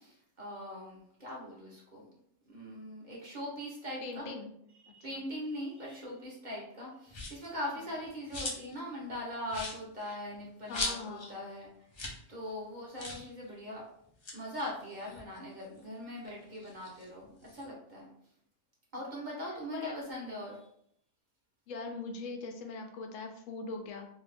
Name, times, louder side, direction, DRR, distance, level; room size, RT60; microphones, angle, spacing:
voice 1, 0.0-2.1 2.5-4.3 4.9-11.7 12.3-13.8 14.3-18.1 18.9-20.6, left 1 dB, 40° right, -4 dB, 0.9 m, -41 dB
voice 2, 4.0-4.5 4.9-5.0 10.7-11.4 19.7-19.9 21.7-24.1, left 3 dB, 80° left, 3 dB, 1.0 m, -41 dB
sound 1, 7.1-7.5 7.9-8.8 9.1-9.2 9.5-11.3 11.6-11.7 11.9-12.2 12.5-12.6 13.0-13.3 14.0-15.8 16.2-17.7, left 2 dB, 40° left, 0.4 m, -40 dB
2.7 x 2.3 x 3.3 m, 0.69 s
omnidirectional pair, 1.3 m